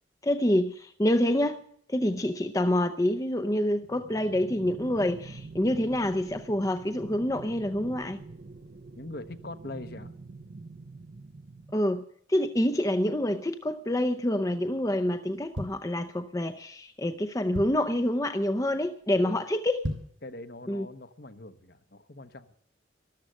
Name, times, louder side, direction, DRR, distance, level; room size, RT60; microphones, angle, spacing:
voice 1, 0.2-1.6 1.9-8.2 11.7-12.0 12.3-19.9 20.7-20.9, left 1 dB, 15° left, 0.6 m, -27 dB
sound 1, 3.8-11.8, right 3 dB, 55° right, 0.7 m, -46 dB
voice 2, 9.0-10.2 19.1-19.3 20.2-22.5, left 2 dB, 55° left, 1.1 m, -42 dB
sound 2, 15.5-16.5 17.0-17.1 17.3-18.0 18.5-18.7 19.0-19.1 19.7-20.3 20.7-20.8, equal, 85° right, 4.3 m, -36 dB
13.5 x 13.0 x 7.5 m
head